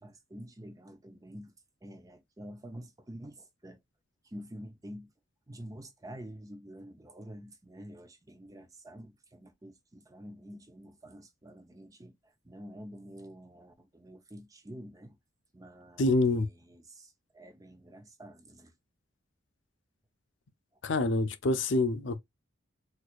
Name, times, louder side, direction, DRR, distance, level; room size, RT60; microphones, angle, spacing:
voice 1, 0.0-1.5 1.8-3.8 4.2-5.1 5.5-15.2 15.5-18.7, equal, 20° right, 0.6 m, -48 dB
voice 2, 16.0-16.5 20.8-22.2, left 2 dB, 65° left, 0.5 m, -26 dB
4.3 x 2.4 x 2.3 m
head